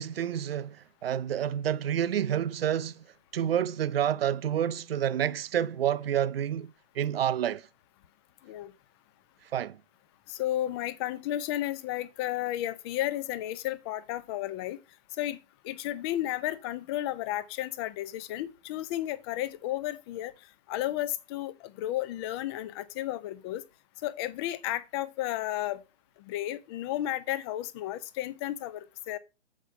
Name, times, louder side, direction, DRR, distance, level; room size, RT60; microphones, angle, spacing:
voice 1, 0.0-3.0 3.3-7.7 9.5-9.8, right 10 dB, 60° right, 0.6 m, -29 dB
voice 2, 10.3-14.8 15.2-15.4 15.6-20.3 20.7-23.6 24.0-25.8 26.2-29.2, left 14 dB, 25° left, 0.6 m, -33 dB
7.3 x 5.2 x 5.2 m
figure-of-eight pair, 120°, 33 cm